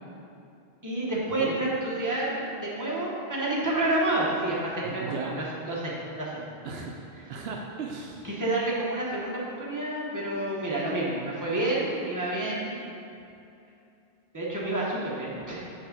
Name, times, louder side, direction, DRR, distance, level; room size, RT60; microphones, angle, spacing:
voice 1, 0.8-6.4 8.2-12.8 14.3-15.6, right 2 dB, 20° right, -6 dB, 1.1 m, -29 dB
voice 2, 1.4-1.7 4.8-5.4 6.6-8.3, right 4 dB, 75° right, 1 dB, 0.8 m, -36 dB
6.4 x 3.6 x 5.8 m, 2.7 s
omnidirectional pair, 1.1 m